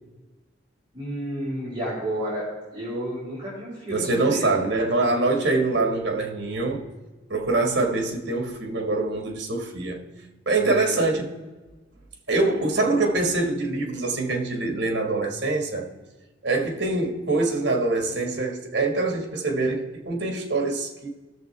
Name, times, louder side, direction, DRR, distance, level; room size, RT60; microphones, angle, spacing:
voice 1, 0.9-4.5 10.6-10.9, right 1 dB, 25° right, 3.8 m, -31 dB
voice 2, 3.9-6.8 7.3-10.0 10.5-11.2 12.3-15.9 16.4-21.1, right 3 dB, 65° right, 1.7 m, -24 dB
17.5 x 6.8 x 3.4 m
head